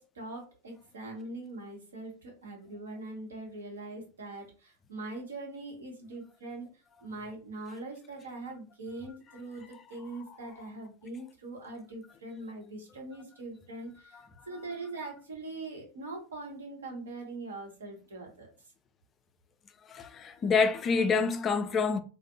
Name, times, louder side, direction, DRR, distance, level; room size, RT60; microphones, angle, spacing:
voice 1, 0.0-6.7 7.0-14.2 14.5-18.5, right 2 dB, 65° right, 1.0 m, -42 dB
voice 2, 19.9-22.0, left 5 dB, 25° left, 0.3 m, -27 dB
2.5 x 2.2 x 2.6 m
figure-of-eight pair, 90°, 0 cm